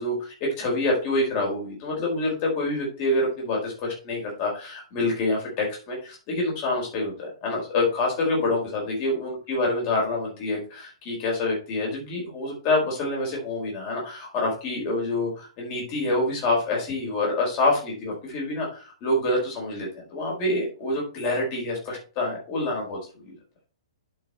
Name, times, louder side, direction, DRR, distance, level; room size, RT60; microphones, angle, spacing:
voice 1, 0.0-23.3, left 2 dB, 30° left, -1 dB, 4.6 m, -27 dB
11.0 x 5.8 x 3.1 m, 0.36 s
figure-of-eight pair, 115°, 3 cm